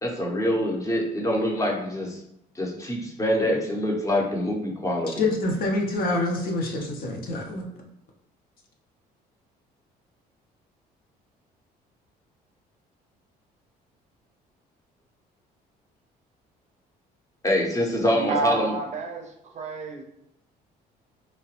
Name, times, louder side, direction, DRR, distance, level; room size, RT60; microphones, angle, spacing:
voice 1, 0.0-2.2 2.5-5.3 17.4-18.7, left 1 dB, 20° left, -1 dB, 0.8 m, -25 dB
voice 2, 5.1-7.7, left 2 dB, 60° left, 0 dB, 0.7 m, -26 dB
voice 3, 18.1-20.0, right 4 dB, 45° right, 2 dB, 0.5 m, -30 dB
2.9 x 2.2 x 2.9 m, 0.79 s
cardioid pair, 110°, 17 cm